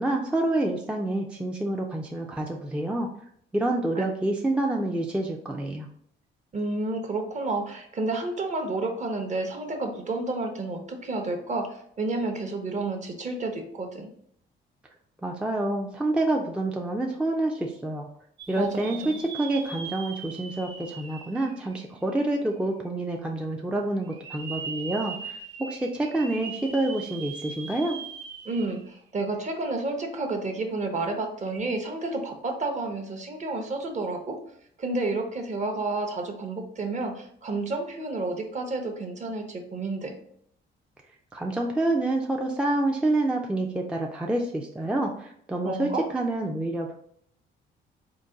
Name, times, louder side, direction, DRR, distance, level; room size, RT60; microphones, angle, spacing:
voice 1, 0.0-3.1 3.5-5.9 15.2-18.1 18.5-28.0 41.3-46.9, right 2 dB, 5° right, 1 dB, 0.3 m, -27 dB
voice 2, 6.5-14.1 18.6-19.2 28.4-34.4 34.8-40.1 45.6-46.0, right 2 dB, 35° right, 4 dB, 0.7 m, -30 dB
sound 1, 18.4-22.3 22.9-23.0 24.0-29.0 29.4-29.5 31.4-31.6, right 5 dB, 85° right, 0.5 m, -40 dB
3.8 x 2.2 x 3.7 m, 0.66 s
cardioid pair, 90°, 20 cm